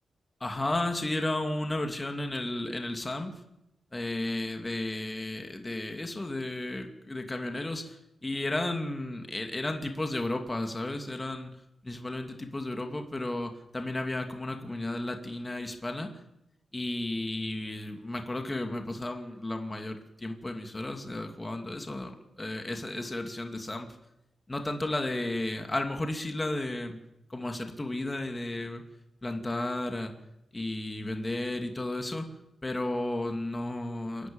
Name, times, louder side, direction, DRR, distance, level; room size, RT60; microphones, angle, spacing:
voice 1, 0.4-3.3 3.9-11.5 11.8-16.1 16.7-23.9 24.5-27.0 27.3-28.8 29.2-30.1 30.5-32.3 32.6-34.3, left 1 dB, 25° left, 4 dB, 2.5 m, -33 dB
29.0 x 11.5 x 8.9 m, 0.88 s
cardioid pair, 80°, 0 cm